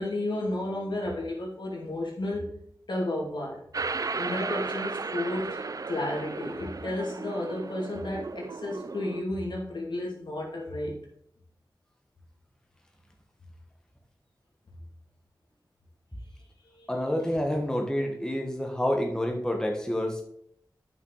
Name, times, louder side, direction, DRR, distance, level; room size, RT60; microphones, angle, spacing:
voice 1, 0.0-2.5 2.9-3.6 4.1-11.0 16.7-16.9, left 1 dB, 80° left, -2 dB, 2.6 m, -32 dB
sound 1, 3.7-9.2, right 4 dB, 50° right, 0.4 m, -35 dB
voice 2, 16.9-20.2, left 1 dB, 10° left, 2 dB, 1.5 m, -28 dB
9.3 x 6.0 x 4.1 m, 0.69 s
wide cardioid pair, 60°, 8 cm